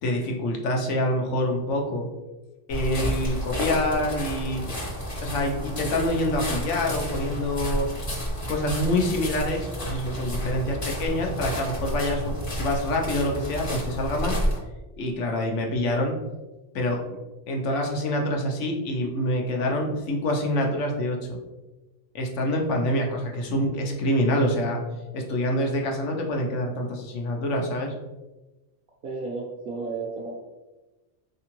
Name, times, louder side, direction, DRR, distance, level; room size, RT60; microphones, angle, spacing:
voice 1, 0.0-2.1 2.7-4.7 5.2-7.9 8.5-14.4 15.0-16.1 16.7-17.0 17.5-21.2 22.1-24.8 25.1-27.9, left 1 dB, 90° left, 1 dB, 1.0 m, -26 dB
sound 1, 2.7-14.6, equal, 30° left, 0.8 m, -30 dB
voice 2, 29.0-30.4, right 4 dB, 60° right, -2 dB, 0.7 m, -33 dB
3.6 x 2.8 x 2.9 m, 1.1 s
omnidirectional pair, 1.2 m